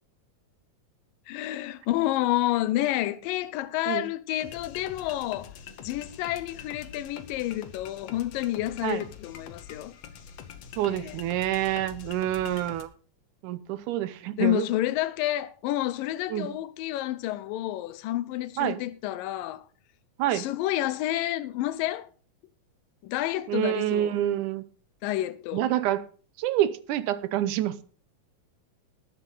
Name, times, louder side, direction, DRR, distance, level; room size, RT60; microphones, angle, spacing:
voice 1, 1.3-5.5 5.8-9.9 10.9-11.2 14.4-19.6 20.3-22.1 23.0-24.1 25.0-25.6, left 14 dB, 80° left, 2.4 m, -29 dB
sound 1, 4.4-12.8, left 7 dB, 60° left, 1.7 m, -45 dB
voice 2, 10.8-12.9 13.4-14.7 16.3-16.5 18.6-18.8 20.2-20.5 23.5-24.6 25.5-26.0 26.4-27.8, right 12 dB, 75° right, 2.2 m, -27 dB
20.0 x 7.5 x 3.9 m
omnidirectional pair, 3.9 m